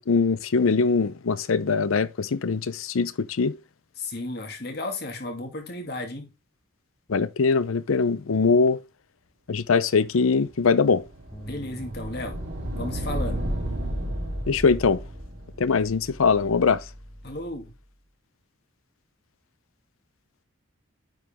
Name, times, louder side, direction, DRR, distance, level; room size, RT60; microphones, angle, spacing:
voice 1, 0.0-3.6 7.1-8.8 9.5-11.0 14.5-15.0 15.6-16.8, left 4 dB, 85° left, 0.6 m, -22 dB
voice 2, 4.0-6.3 11.4-12.4 12.7-13.4 17.2-17.7, left 2 dB, 50° left, 2.1 m, -34 dB
sound 1, 10.4-17.3, right 1 dB, 65° right, 3.8 m, -33 dB
Bass guitar, 11.3-17.6, right 1 dB, 10° left, 1.4 m, -48 dB
9.5 x 5.0 x 3.5 m
head